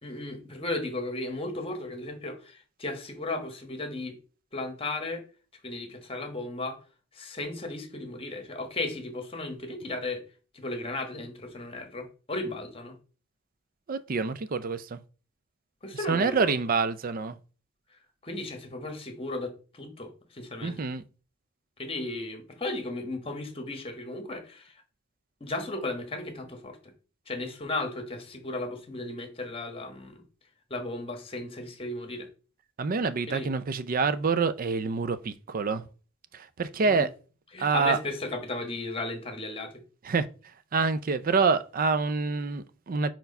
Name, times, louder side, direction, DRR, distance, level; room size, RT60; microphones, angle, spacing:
voice 1, 0.0-4.2 4.5-5.2 5.6-6.8 7.1-10.2 10.5-13.0 15.8-16.5 18.2-20.7 21.8-24.7 25.4-26.8 27.3-30.2 30.7-32.3 33.3-33.5 36.8-37.1 37.5-39.7, left 2 dB, 30° left, 1.3 m, -35 dB
voice 2, 13.9-15.0 16.1-17.4 20.6-21.0 32.8-35.8 36.3-37.1 37.6-38.0 40.0-40.3 40.7-43.1, right 4 dB, 45° right, 0.5 m, -27 dB
4.6 x 4.5 x 5.3 m
head